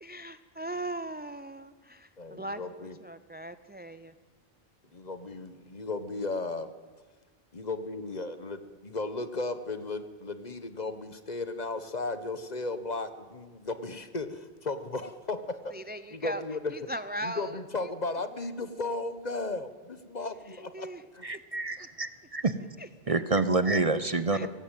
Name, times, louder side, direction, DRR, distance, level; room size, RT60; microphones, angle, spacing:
voice 1, 0.0-4.1 15.7-16.4 16.7-17.6 20.5-21.0 21.8-21.9 22.8-23.1 24.3-24.5, right 1 dB, 10° right, 12 dB, 0.5 m, -39 dB
voice 2, 2.2-3.0 4.9-6.7 7.5-15.7 16.1-16.8 17.2-20.9 21.1-21.3, left 3 dB, 45° left, 11 dB, 1.3 m, -35 dB
voice 3, 21.2-22.6 23.1-24.5, right 3 dB, 35° right, 12 dB, 0.9 m, -27 dB
22.0 x 17.5 x 9.0 m, 1.4 s
omnidirectional pair, 1.0 m